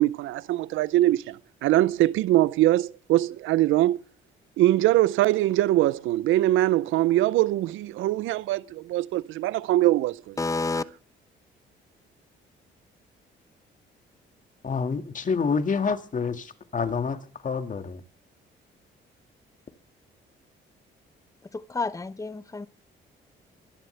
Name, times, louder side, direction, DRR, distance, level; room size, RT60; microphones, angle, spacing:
voice 1, 0.0-4.0 4.6-10.4, right 15 dB, 90° right, 0.6 m, -22 dB
voice 2, 10.4-10.8 21.5-22.7, left 3 dB, 15° left, 0.9 m, -29 dB
voice 3, 14.6-18.0, left 5 dB, 40° left, 2.0 m, -28 dB
24.0 x 11.5 x 3.3 m
cardioid pair, 90°, 20 cm